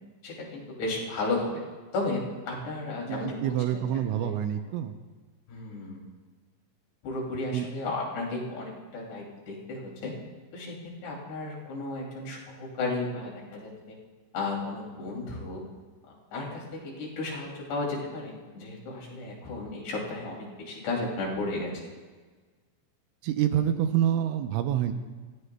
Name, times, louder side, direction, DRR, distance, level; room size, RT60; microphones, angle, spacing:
voice 1, 0.2-1.6 1.9-3.8 4.1-4.3 5.5-6.0 7.0-10.2 10.5-10.8 11.0-14.0 14.3-15.6 16.1-21.8, left 2 dB, 60° left, -3 dB, 4.6 m, -34 dB
voice 2, 3.1-5.0 7.5-7.7 23.2-24.9, right 10 dB, 85° right, 7 dB, 2.9 m, -27 dB
28.0 x 14.5 x 2.2 m, 1.4 s
omnidirectional pair, 5.5 m